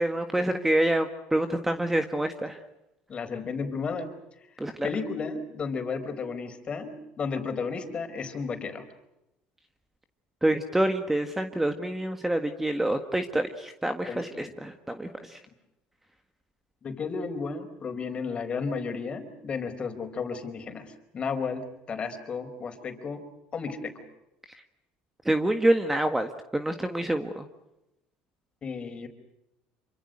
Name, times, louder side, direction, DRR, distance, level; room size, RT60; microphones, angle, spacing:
voice 1, 0.0-2.6 4.6-4.9 10.4-15.4 25.2-27.4, right 1 dB, 10° right, 7 dB, 1.7 m, -27 dB
voice 2, 3.1-4.1 4.8-8.8 14.1-14.5 16.8-23.2 23.5-24.0 28.6-29.1, left 5 dB, 35° left, 7 dB, 4.6 m, -33 dB
27.5 x 25.0 x 6.5 m, 0.90 s
cardioid pair, 115°, 3 cm